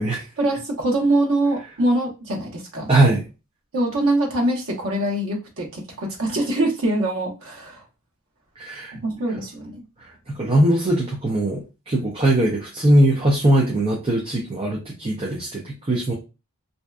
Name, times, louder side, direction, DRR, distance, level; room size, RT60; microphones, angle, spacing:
voice 1, 0.4-2.9 3.7-7.8 8.9-9.8, right 1 dB, 70° right, -1 dB, 0.9 m, -23 dB
voice 2, 2.9-3.2 8.6-8.9 10.3-16.1, right 1 dB, 25° right, -3 dB, 0.5 m, -20 dB
2.6 x 2.2 x 2.3 m, 0.29 s
head